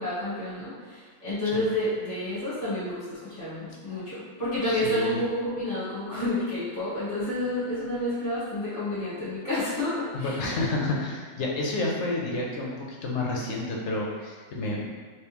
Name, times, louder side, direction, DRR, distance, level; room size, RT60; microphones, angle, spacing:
voice 1, 0.0-10.4, left 1 dB, 30° left, -12 dB, 1.3 m, -30 dB
voice 2, 4.6-5.2 10.1-14.9, left 2 dB, 65° left, -2 dB, 0.9 m, -30 dB
3.4 x 3.0 x 2.9 m, 1.5 s
omnidirectional pair, 1.4 m